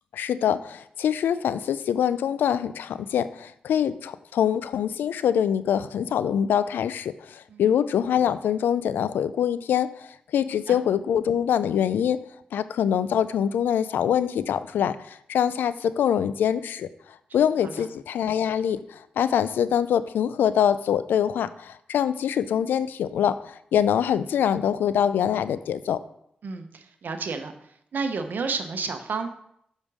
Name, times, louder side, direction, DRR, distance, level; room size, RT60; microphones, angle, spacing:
voice 1, 0.1-12.2 12.5-16.9 17.3-26.0, left 9 dB, 85° left, 15 dB, 0.3 m, -24 dB
voice 2, 26.4-27.5 27.9-29.3, right 4 dB, 70° right, 7 dB, 0.9 m, -31 dB
7.4 x 5.2 x 4.9 m, 0.71 s
supercardioid pair, 40°, 3 cm